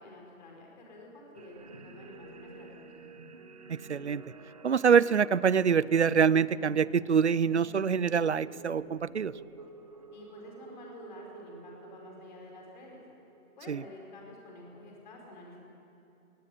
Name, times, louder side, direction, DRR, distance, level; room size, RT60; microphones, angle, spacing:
voice 1, 0.0-3.0 10.1-13.0 13.6-15.6, left 2 dB, 30° left, -1 dB, 4.9 m, -49 dB
sound 1, 1.3-14.1, right 3 dB, 25° right, 1.0 m, -50 dB
voice 2, 3.7-4.2 4.6-9.3 13.7-13.8, right 6 dB, 50° right, 20 dB, 0.6 m, -25 dB
21.0 x 19.5 x 10.0 m, 2.8 s
hypercardioid pair, 165°, 43 cm